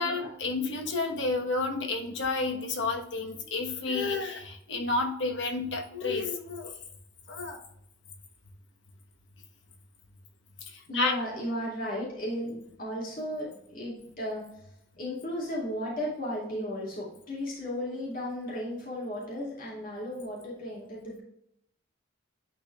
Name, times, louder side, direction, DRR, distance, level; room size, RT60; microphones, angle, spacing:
voice 1, 0.0-6.7 7.3-7.6 10.7-11.1, left 3 dB, 75° left, 4 dB, 1.1 m, -30 dB
voice 2, 10.9-14.5 15.0-21.2, left 1 dB, 50° left, -4 dB, 2.4 m, -35 dB
10.0 x 4.4 x 2.3 m, 0.75 s
head